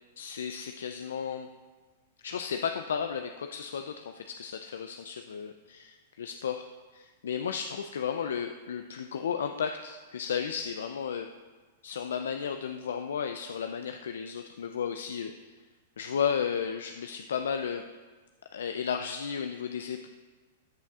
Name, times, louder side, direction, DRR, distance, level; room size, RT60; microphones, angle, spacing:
voice 1, 0.2-1.5 2.2-6.6 6.9-11.3 11.8-15.3 16.0-17.8 18.5-20.1, left 7 dB, 80° left, 6 dB, 0.4 m, -33 dB
13.5 x 7.4 x 2.4 m, 1.4 s
hypercardioid pair, 120°, 0 cm